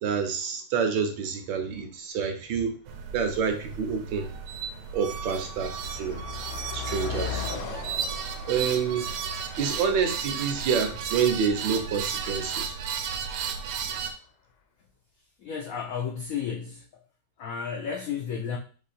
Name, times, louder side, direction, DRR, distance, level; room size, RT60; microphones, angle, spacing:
voice 1, 0.0-2.7 3.1-4.3 4.9-6.2 6.7-7.5 8.5-9.1 9.6-12.7, right 6 dB, 70° right, 5 dB, 1.4 m, -28 dB
Car passing by, 2.2-2.3 3.1-3.3 3.6-14.0, left 8 dB, 70° left, 1.2 m, -41 dB
sound 1, 2.9-14.1, right 7 dB, 85° right, 1.5 m, -34 dB
voice 2, 15.4-17.0 17.4-18.6, left 7 dB, 85° left, 1 dB, 0.7 m, -33 dB
4.6 x 2.7 x 4.2 m, 0.39 s
omnidirectional pair, 2.2 m